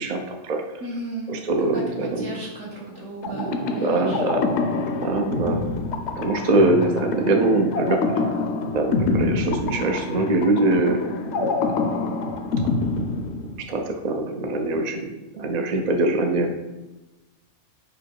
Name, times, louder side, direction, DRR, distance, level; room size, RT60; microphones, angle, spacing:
voice 1, 0.0-0.6 1.3-2.3 3.3-4.5 5.0-5.7 6.2-8.3 8.7-11.6 13.7-15.1 15.3-16.5, right 2 dB, 45° right, 3 dB, 0.6 m, -23 dB
voice 2, 0.8-1.3 1.7-4.2, right 1 dB, 75° right, -4 dB, 2.1 m, -35 dB
sound 1, 3.2-13.9, left 3 dB, 70° left, 0.9 m, -26 dB
5.1 x 4.8 x 4.6 m, 1.1 s
omnidirectional pair, 1.2 m